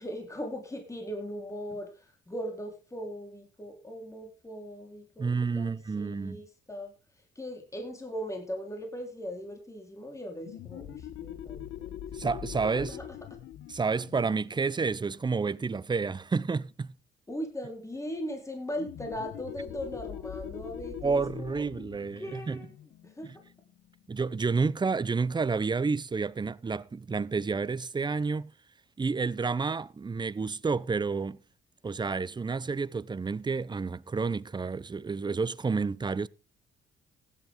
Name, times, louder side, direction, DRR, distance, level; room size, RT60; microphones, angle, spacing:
voice 1, 0.0-6.9 7.4-12.0 12.5-12.6 12.9-13.0 17.3-21.7 22.2-22.7 23.0-23.3, equal, 15° left, 4.0 m, -39 dB
voice 2, 5.2-6.4 12.1-13.0 13.7-16.9 21.0-22.6 23.2-23.3 24.1-28.5 29.0-31.4 31.8-36.3, right 4 dB, 20° right, 0.7 m, -30 dB
sound 1, 10.4-15.7 18.8-24.1, left 10 dB, 75° left, 1.2 m, -43 dB
16.0 x 10.5 x 3.7 m
cardioid pair, 90°, 20 cm